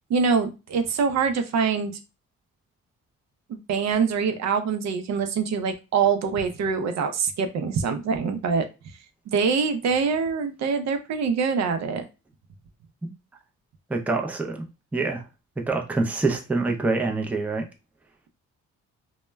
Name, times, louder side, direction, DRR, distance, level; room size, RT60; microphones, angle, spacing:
voice 1, 0.1-1.9 3.5-8.6 9.3-12.1, right 5 dB, 60° right, 0.5 m, -24 dB
voice 2, 13.9-14.6 14.9-15.2 15.6-17.6, right 3 dB, 5° right, 0.4 m, -25 dB
2.1 x 2.1 x 3.3 m
cardioid pair, 90°, 30 cm